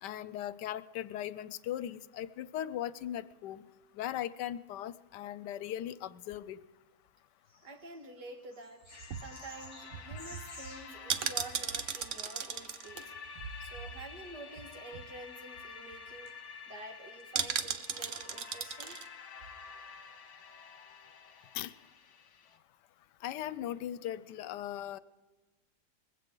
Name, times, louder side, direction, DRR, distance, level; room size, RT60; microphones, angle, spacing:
voice 1, 0.0-3.6 3.9-6.6 21.5-21.7 23.2-25.0, left 11 dB, 80° left, 16 dB, 1.3 m, -38 dB
sound 1, 7.5-8.0 8.5-11.0 12.7-13.1, left 1 dB, 15° right, 6.8 m, -53 dB
voice 2, 7.6-8.8 9.2-13.1 13.6-19.0, right 2 dB, 75° right, 4 dB, 2.3 m, -49 dB
sound 2, 8.8-14.3 14.6-14.7 14.9-15.2 15.6-15.7 15.9-16.3 17.3-19.1 19.4-19.5, right 7 dB, 55° right, 1.0 m, -37 dB
sound 3, 8.9-22.6, left 5 dB, 65° left, 1.6 m, -50 dB
20.5 x 16.0 x 3.9 m, 1.2 s
omnidirectional pair, 1.8 m